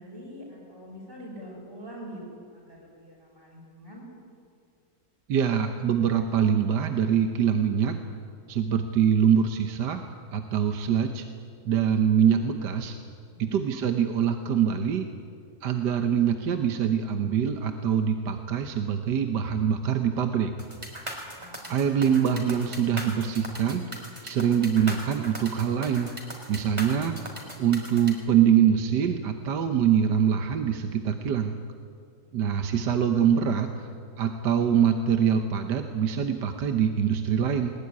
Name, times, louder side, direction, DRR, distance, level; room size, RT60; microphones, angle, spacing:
voice 1, 0.0-4.0 13.3-13.6 21.4-21.9, equal, 40° right, -6 dB, 6.0 m, -44 dB
voice 2, 5.3-8.0 8.5-10.0 10.3-11.2 11.7-13.0 13.4-15.1 15.6-20.5 21.7-23.8 24.2-26.1 26.5-27.1 27.6-31.6 32.3-33.9 34.2-37.7, right 8 dB, 70° right, 6 dB, 1.6 m, -24 dB
sound 1, 20.6-28.1, right 1 dB, 15° right, 3.9 m, -38 dB
20.5 x 20.5 x 9.6 m, 2.3 s
omnidirectional pair, 1.9 m